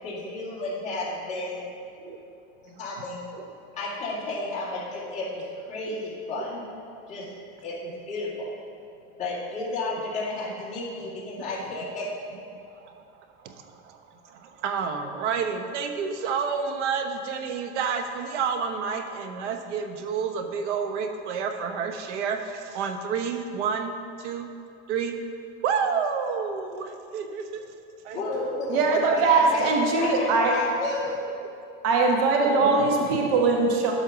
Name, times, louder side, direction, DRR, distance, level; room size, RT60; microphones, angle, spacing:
voice 1, 0.0-1.7 2.8-3.2 3.8-6.6 7.1-7.3 7.6-8.5 9.2-12.1 28.1-28.8 29.3-29.6 30.0-31.2, left 2 dB, 20° left, -9 dB, 2.4 m, -32 dB
voice 2, 12.5-23.9 24.2-24.5 24.9-25.2 25.6-27.7 28.0-28.2 28.8-29.2 31.2-31.3 32.5-33.5, right 6 dB, 80° right, 6 dB, 1.1 m, -30 dB
voice 3, 28.7-30.5 31.8-33.9, right 3 dB, 55° right, 1 dB, 1.5 m, -21 dB
12.0 x 4.4 x 6.1 m, 2.5 s
supercardioid pair, 160°, 34 cm